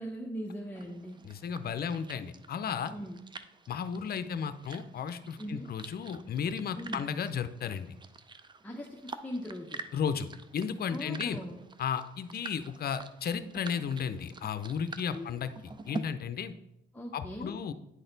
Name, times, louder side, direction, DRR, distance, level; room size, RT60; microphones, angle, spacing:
voice 1, 0.0-1.2 2.9-3.2 5.4-5.7 6.8-7.0 8.6-9.8 10.9-11.6 15.1-15.3 16.9-17.6, equal, 5° left, 0 dB, 0.8 m, -40 dB
sound 1, 0.8-16.0, right 4 dB, 25° right, 0.5 m, -47 dB
voice 2, 1.2-2.9 3.7-7.9 9.9-10.3 10.5-11.4 11.8-15.5 15.9-16.5 17.1-17.7, left 7 dB, 50° left, 11 dB, 0.6 m, -34 dB
9.6 x 4.1 x 3.9 m, 0.90 s
cardioid pair, 90°, 20 cm